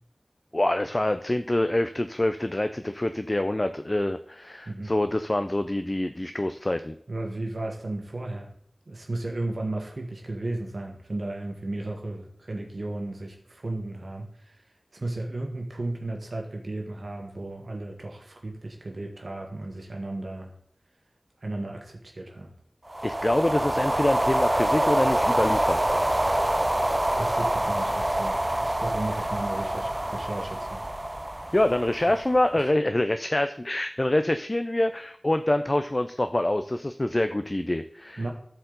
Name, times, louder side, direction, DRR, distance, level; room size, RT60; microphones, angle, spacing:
voice 1, 0.5-6.9 23.0-25.8 31.5-38.2, left 1 dB, 35° left, 9 dB, 0.4 m, -26 dB
voice 2, 7.1-8.5 8.9-14.6 14.9-20.5 21.4-22.5 27.2-30.8 32.6-32.7 38.2-38.3, right 2 dB, 80° right, 1 dB, 1.4 m, -34 dB
sound 1, 22.9-32.4, right 1 dB, 25° right, 0.5 m, -26 dB
14.0 x 4.6 x 3.9 m, 0.66 s
wide cardioid pair, 50°, 0 cm